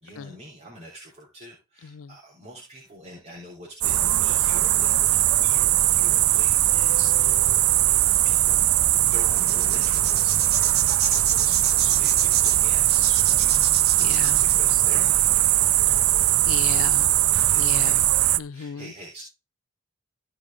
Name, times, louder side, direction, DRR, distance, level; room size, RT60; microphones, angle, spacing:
voice 1, 0.0-7.6 8.2-13.6 14.4-16.0 17.5-18.1 18.5-19.2, equal, 30° right, 3.4 m, -44 dB
sound 1, 3.8-18.4, right 14 dB, 85° right, 0.5 m, -20 dB
sound 2, 9.3-14.6, right 8 dB, 50° right, 1.2 m, -29 dB
voice 2, 14.0-14.4 16.5-17.1 17.6-17.9 18.4-18.9, left 7 dB, 75° left, 0.4 m, -34 dB
14.5 x 5.0 x 3.5 m
head